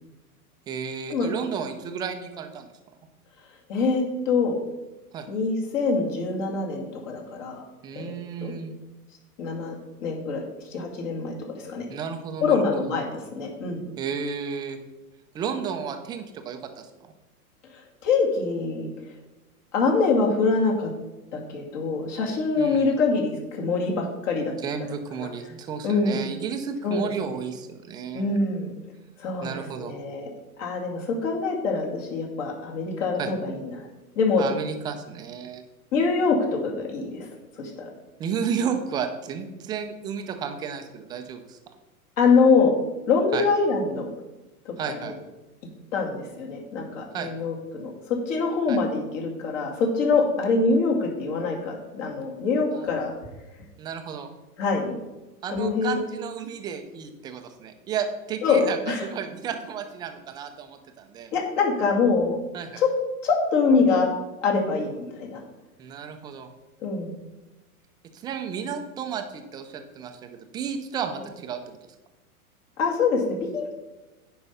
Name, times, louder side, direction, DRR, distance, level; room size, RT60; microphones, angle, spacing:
voice 1, 0.7-2.7 5.1-5.3 7.8-8.7 11.9-12.9 14.0-14.8 15.3-16.9 22.6-22.9 24.6-28.4 29.4-29.9 33.2-33.3 34.4-35.6 38.2-41.6 43.3-43.5 44.8-45.2 47.1-47.3 48.7-48.8 52.7-52.9 53.8-54.3 55.4-61.3 62.5-62.8 65.8-66.5 68.1-71.8, right 7 dB, 10° right, 6 dB, 0.3 m, -32 dB
voice 2, 3.7-4.6 5.3-7.6 7.9-8.1 8.4-8.5 9.4-10.4 10.7-11.9 12.4-13.8 17.7-18.9 19.7-20.9 21.3-24.5 25.2-25.3 25.8-26.2 26.8-27.0 28.1-28.7 29.2-30.3 30.6-33.9 34.2-34.4 35.9-37.7 42.2-42.7 43.1-44.1 44.6-45.1 45.9-53.1 54.6-54.9 55.5-56.0 58.4-59.0 61.3-62.4 62.8-62.9 63.2-64.1 64.4-65.4 66.8-67.1 72.8-73.7, left 4 dB, 55° left, 0 dB, 2.5 m, -24 dB
9.6 x 4.7 x 5.5 m, 1.1 s
hypercardioid pair, 110°, 45 cm